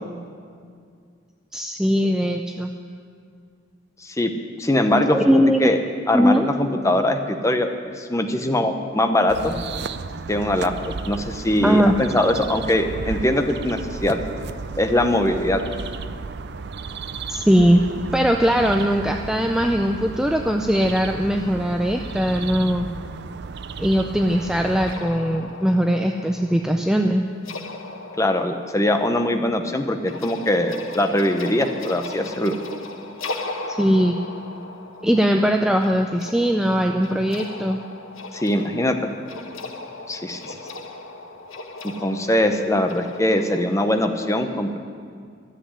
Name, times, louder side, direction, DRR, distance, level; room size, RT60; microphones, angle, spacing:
voice 1, 1.5-2.7 5.1-5.7 6.1-6.4 11.6-11.9 17.3-17.8 18.1-22.9 23.8-27.2 33.7-34.2 35.0-37.8, equal, 5° right, 3 dB, 0.4 m, -20 dB
voice 2, 4.6-5.8 6.1-7.7 8.0-9.6 10.3-10.7 11.0-14.2 14.8-15.6 28.2-32.6 38.3-39.0 40.1-40.6 42.0-44.8, left 1 dB, 15° left, 5 dB, 0.8 m, -21 dB
sound 1, 9.3-24.9, right 4 dB, 55° right, 0.5 m, -34 dB
sound 2, 24.9-44.1, left 2 dB, 85° left, 1.1 m, -38 dB
13.0 x 7.9 x 9.8 m, 2.2 s
head